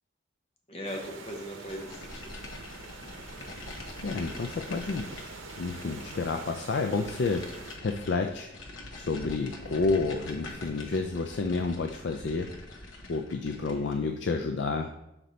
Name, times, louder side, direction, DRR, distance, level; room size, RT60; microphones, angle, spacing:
voice 1, 0.7-2.4 9.6-9.8 13.6-14.0, equal, 30° left, 0 dB, 0.9 m, -40 dB
sound 1, 0.8-7.8, right 3 dB, 90° right, 0.8 m, -45 dB
sound 2, 1.7-14.0, left 2 dB, 80° left, 1.0 m, -44 dB
voice 2, 4.0-5.2 5.6-8.5 8.9-12.5 13.1-14.9, left 3 dB, 65° left, 5 dB, 0.4 m, -30 dB
6.6 x 4.4 x 4.0 m, 0.87 s
head